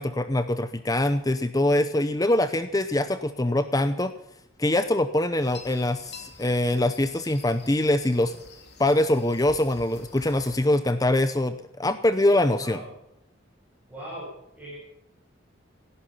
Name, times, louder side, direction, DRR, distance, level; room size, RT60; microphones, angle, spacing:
voice 1, 0.0-4.1 4.6-8.3 8.8-12.8, left 1 dB, 20° left, 11 dB, 0.7 m, -23 dB
sound 1, 5.4-10.6, left 4 dB, 55° left, 3.1 m, -48 dB
voice 2, 12.6-12.9 13.9-14.3 14.5-14.9, right 1 dB, 5° right, -6 dB, 6.7 m, -39 dB
18.0 x 11.0 x 5.7 m, 0.79 s
head